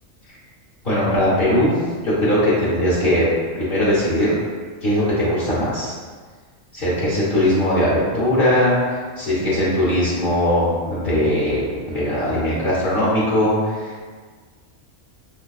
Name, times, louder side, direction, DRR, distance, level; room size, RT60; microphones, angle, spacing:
voice 1, 0.8-3.3 3.5-4.3 4.8-6.0 6.7-14.0, left 1 dB, 45° left, -9 dB, 1.2 m, -20 dB
5.2 x 2.8 x 2.3 m, 1.5 s
omnidirectional pair, 1.3 m